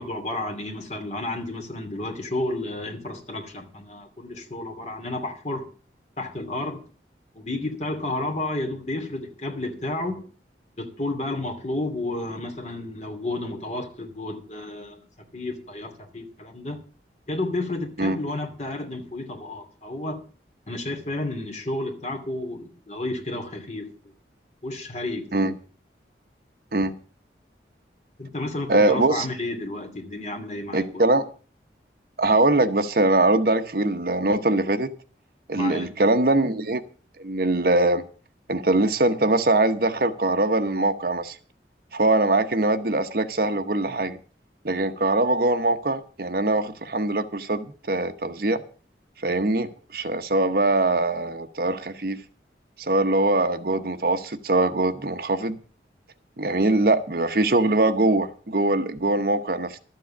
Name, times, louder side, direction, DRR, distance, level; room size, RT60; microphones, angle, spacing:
voice 1, 0.0-5.7 6.2-6.8 7.3-10.3 10.8-15.0 15.3-16.8 17.3-20.2 20.7-23.9 24.6-25.5 28.2-31.0 35.5-36.0, left 2 dB, 40° left, 2.6 m, -31 dB
voice 2, 28.7-29.3 30.7-31.2 32.2-34.9 35.5-36.8 37.2-38.0 38.5-41.4 41.9-44.2 44.6-48.6 49.2-52.2 52.8-55.6 56.4-59.8, right 2 dB, 55° right, 0.9 m, -22 dB
12.5 x 7.7 x 7.2 m
head